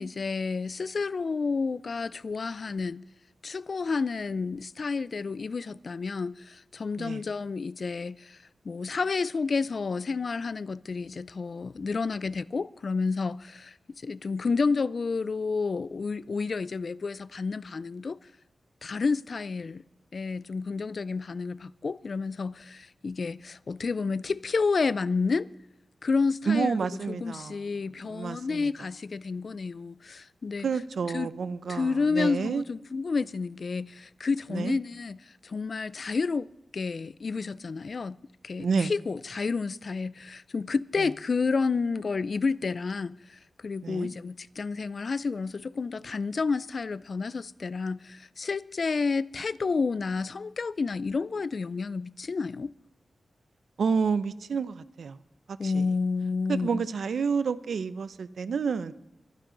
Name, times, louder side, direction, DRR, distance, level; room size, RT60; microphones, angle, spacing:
voice 1, 0.0-3.0 3.4-8.4 8.6-13.7 14.0-18.2 18.8-19.8 20.1-25.5 26.0-30.7 31.1-31.3 31.7-35.2 35.4-36.5 36.7-38.2 38.4-52.7 55.6-56.8, left 4 dB, 50° left, 0.4 m, -30 dB
voice 2, 26.5-27.7 28.0-28.7 30.6-32.6 34.5-34.8 38.6-38.9 41.0-41.1 43.8-44.1 53.8-55.2 55.5-55.9 56.5-58.9, right 5 dB, 80° right, 0.6 m, -29 dB
23.5 x 10.0 x 3.9 m
wide cardioid pair, 110°, 0 cm